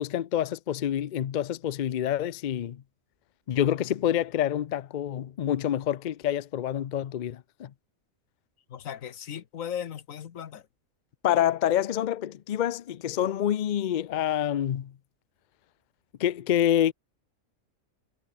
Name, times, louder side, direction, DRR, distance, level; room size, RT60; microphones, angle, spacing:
voice 1, 0.0-2.8 3.5-7.7 11.2-14.9 16.2-16.9, left 11 dB, 55° left, 0.5 m, -27 dB
voice 2, 8.7-10.7, left 9 dB, 85° left, 1.4 m, -37 dB
omnidirectional pair, 1.4 m